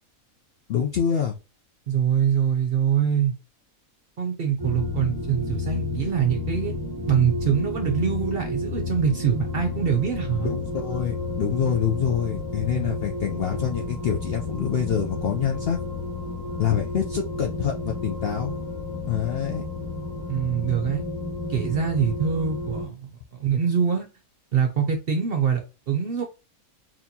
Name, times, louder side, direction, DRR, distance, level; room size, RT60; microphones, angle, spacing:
voice 1, 0.7-1.4 10.4-15.8 16.6-18.6 19.1-19.6, left 8 dB, 65° left, 0.6 m, -26 dB
voice 2, 1.9-3.4 4.2-6.7 7.1-10.5 12.7-12.9 20.3-21.0 21.5-24.1 24.5-26.2, right 7 dB, 60° right, 0.6 m, -24 dB
sound 1, 4.6-22.9, left 3 dB, 20° right, 0.6 m, -31 dB
4.2 x 2.9 x 2.7 m
omnidirectional pair, 1.5 m